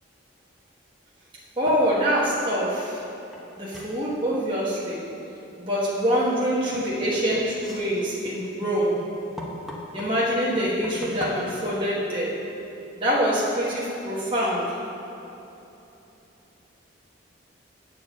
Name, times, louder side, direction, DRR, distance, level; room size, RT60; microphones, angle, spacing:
voice 1, 1.6-3.0 3.6-5.0 5.6-9.0 9.9-12.4 13.0-14.8, equal, 25° right, -7 dB, 1.2 m, -25 dB
sound 1, 3.3-3.4 3.7-4.0 6.4-6.9 7.5-10.1 10.7-11.7, equal, ahead, 0.9 m, -39 dB
8.1 x 4.8 x 7.2 m, 3.0 s
head